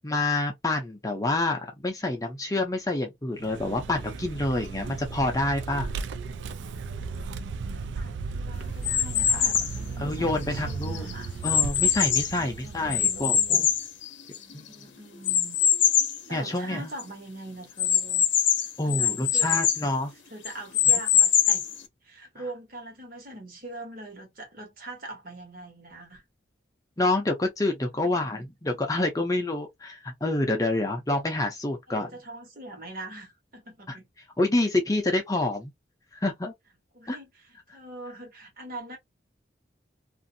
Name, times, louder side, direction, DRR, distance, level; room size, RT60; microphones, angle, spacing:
voice 1, 0.0-5.9 9.3-9.5 10.0-11.1 11.4-13.7 14.5-14.7 16.3-16.9 18.8-20.1 27.0-32.1 33.9-34.0 34.4-35.7 36.1-36.5 37.1-37.2, left 2 dB, 20° left, 0.5 m, -27 dB
Vehicle, 3.4-13.7, right 4 dB, 75° right, 0.3 m, -36 dB
voice 2, 7.7-11.3 12.3-13.7 14.3-15.6 16.3-18.3 18.8-20.0 20.3-21.7 22.0-26.2 28.0-28.5 31.9-34.1 36.9-39.0, right 2 dB, 50° right, 1.2 m, -43 dB
sound 1, 8.8-9.8 10.4-12.4 12.9-14.6 15.2-16.2 16.7-16.8 17.0-17.1 17.8-19.9 20.4-21.8, left 8 dB, 80° left, 0.6 m, -23 dB
2.5 x 2.5 x 2.6 m
head